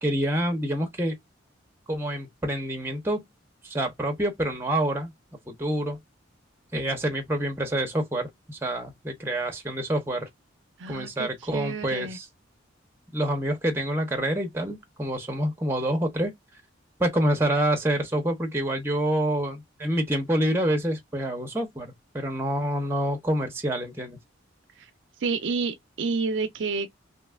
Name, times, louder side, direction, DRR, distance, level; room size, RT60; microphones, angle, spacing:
voice 1, 0.0-1.2 1.9-3.2 3.6-5.1 5.5-6.0 6.7-10.3 10.9-12.2 13.1-16.3 17.0-24.2, right 1 dB, 10° right, 0.6 m, -27 dB
voice 2, 10.8-12.2 24.8-24.9 25.2-26.9, right 4 dB, 65° right, 0.4 m, -29 dB
2.8 x 2.3 x 3.4 m
head